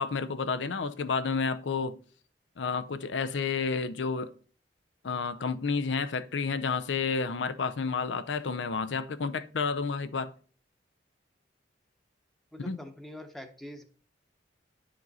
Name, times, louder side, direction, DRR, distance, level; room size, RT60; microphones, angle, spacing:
voice 1, 0.0-2.0 2.6-4.3 5.0-10.3 12.6-12.8, left 5 dB, 80° left, 0.6 m, -30 dB
voice 2, 12.5-13.8, left 1 dB, ahead, 0.8 m, -44 dB
10.5 x 5.2 x 4.0 m
head